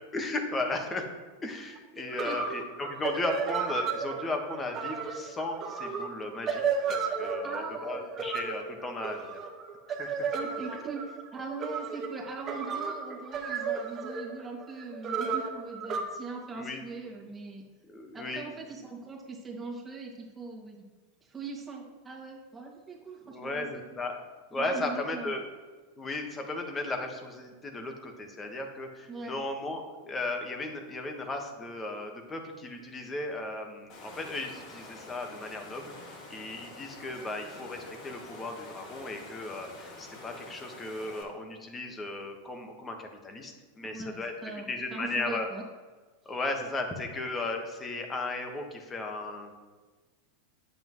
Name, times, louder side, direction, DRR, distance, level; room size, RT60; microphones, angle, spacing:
voice 1, 0.1-1.1 1.4-6.6 6.9-9.4 9.9-10.3 16.5-16.8 17.9-18.5 23.3-24.2 24.5-25.4 26.0-45.5 46.2-49.5, left 2 dB, 20° left, 4 dB, 1.5 m, -36 dB
sound 1, 1.8-1.9 2.1-16.0, right 5 dB, 35° right, 1.5 m, -33 dB
voice 2, 2.0-2.4 7.4-8.0 10.3-17.6 18.1-20.8 21.2-23.8 24.5-25.3 29.1-29.4 43.8-45.6, right 4 dB, 15° right, -3 dB, 2.2 m, -41 dB
Water, 33.9-41.2, left 2 dB, 50° left, 2.3 m, -47 dB
8.8 x 7.8 x 3.1 m, 1.3 s
hypercardioid pair, 95°, 0 cm